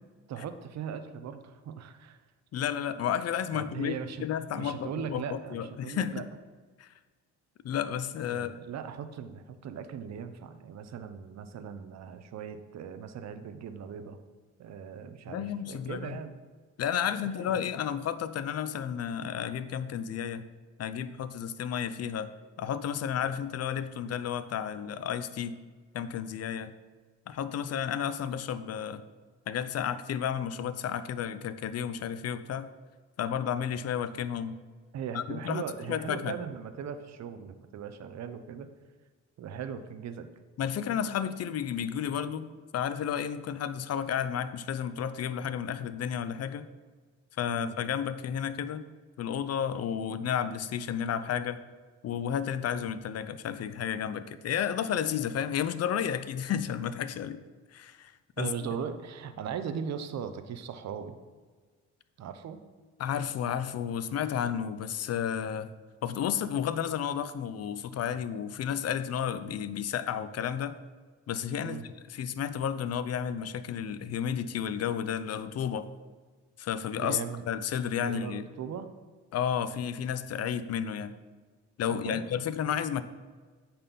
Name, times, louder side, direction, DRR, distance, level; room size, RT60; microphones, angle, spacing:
voice 1, 0.3-2.2 3.5-4.3 4.6-6.2 8.3-14.2 14.6-16.3 17.1-17.6 34.9-38.7 39.4-40.3 47.5-47.8 58.4-61.2 62.2-62.6 71.6-71.8 77.0-77.5 78.0-78.9 81.8-82.3, right 7 dB, 60° right, 10 dB, 0.8 m, -39 dB
voice 2, 2.5-6.2 6.8-6.9 7.6-8.5 15.3-16.2 16.8-20.4 20.8-22.3 22.6-25.6 25.9-26.7 27.3-29.0 29.5-32.7 33.2-34.6 35.1-36.4 40.6-42.5 42.7-46.7 47.4-48.9 49.2-51.6 52.0-57.4 57.7-58.1 58.4-58.5 63.0-65.7 66.0-70.8 71.3-71.8 72.1-75.9 76.6-77.2 77.5-78.4 79.3-81.2 81.8-83.0, left 8 dB, 55° left, 13 dB, 0.6 m, -32 dB
8.8 x 4.4 x 5.4 m, 1.4 s
cardioid pair, 90°, 30 cm